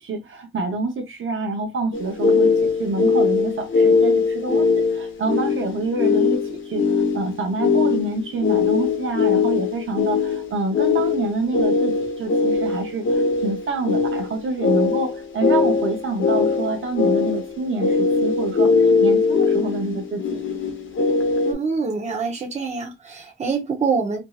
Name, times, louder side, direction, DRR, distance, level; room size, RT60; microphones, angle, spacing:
voice 1, 0.0-20.4, right 3 dB, 80° right, 0.7 m, -27 dB
sound 1, 1.9-21.5, left 4 dB, 70° left, 0.7 m, -21 dB
voice 2, 21.4-24.2, right 5 dB, 35° right, 0.7 m, -25 dB
3.0 x 2.6 x 2.2 m
wide cardioid pair, 180°, 20 cm